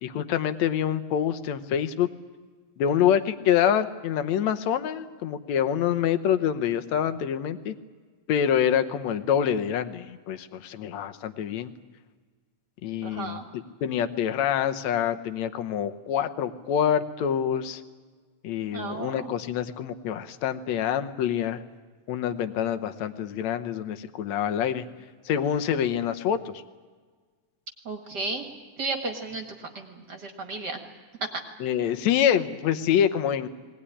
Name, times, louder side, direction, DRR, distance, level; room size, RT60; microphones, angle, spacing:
voice 1, 0.0-2.1 2.8-7.8 8.3-11.7 12.8-17.8 18.4-21.6 22.1-24.9 25.3-26.6 31.6-33.5, left 9 dB, 70° left, 9 dB, 2.2 m, -26 dB
voice 2, 13.0-13.4 18.7-19.3 27.9-28.5 28.8-30.8 31.2-31.3, right 3 dB, 40° right, 5 dB, 2.0 m, -33 dB
20.0 x 19.0 x 10.0 m, 1.5 s
omnidirectional pair, 3.4 m